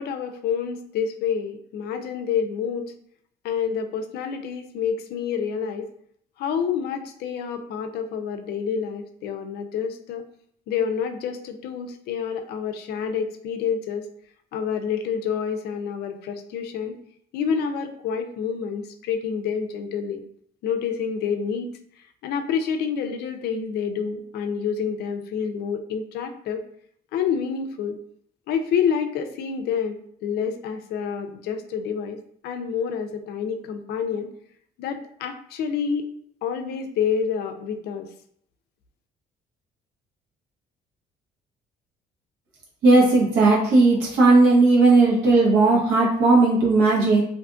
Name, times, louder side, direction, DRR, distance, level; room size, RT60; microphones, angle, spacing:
voice 1, 0.0-2.9 3.4-5.9 6.4-10.3 10.7-14.1 14.5-17.0 17.3-20.2 20.6-21.7 22.2-26.6 27.1-28.0 28.5-32.2 32.4-34.3 34.8-36.1 36.4-38.1, left 7 dB, 70° left, 7 dB, 0.4 m, -28 dB
voice 2, 42.8-47.2, right 3 dB, 90° right, -4 dB, 1.0 m, -16 dB
2.5 x 2.4 x 2.4 m, 0.66 s
cardioid pair, 110°, 17 cm